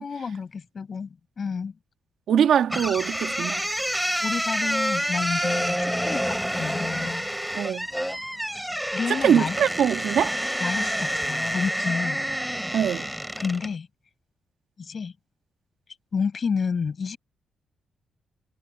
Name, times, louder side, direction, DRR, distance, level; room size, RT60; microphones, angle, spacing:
voice 1, 0.0-1.7 4.2-6.2 6.6-7.3 8.9-9.6 10.6-12.2 13.4-13.9 14.8-15.1 16.1-17.2, left 5 dB, 40° left, 7.4 m, -30 dB
voice 2, 2.3-3.7 7.5-7.9 9.1-10.3 12.7-13.1, right 8 dB, 75° right, 2.2 m, -22 dB
sound 1, 2.7-13.7, equal, ahead, 4.2 m, -28 dB
cardioid pair, 135°, 0 cm